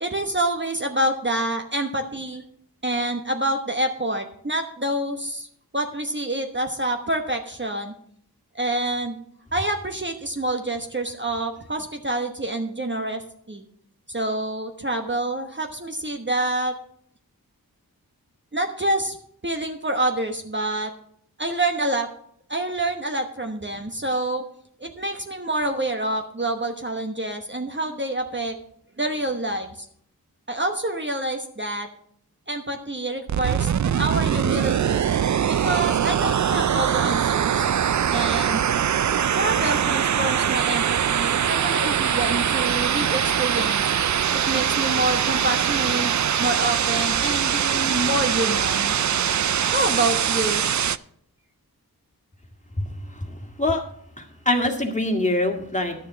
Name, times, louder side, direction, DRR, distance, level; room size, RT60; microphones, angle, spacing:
voice 1, 0.0-2.4 2.8-5.5 5.7-7.9 8.5-9.2 9.5-13.2 13.5-13.6 14.1-16.8 18.5-19.2 19.4-20.9 21.4-22.1 22.5-24.4 24.8-28.6 29.0-29.9 30.5-31.9 32.5-35.0 35.5-37.7 38.1-38.6 39.3-43.8 44.5-46.1 46.4-49.0 49.7-50.6, right 1 dB, 30° right, 4 dB, 1.1 m, -27 dB
sound 1, 33.3-51.0, right 9 dB, 50° right, 0.4 m, -22 dB
voice 2, 54.2-55.9, left 1 dB, 20° left, 3 dB, 1.9 m, -23 dB
11.0 x 6.8 x 5.7 m, 0.65 s
wide cardioid pair, 45°, 37 cm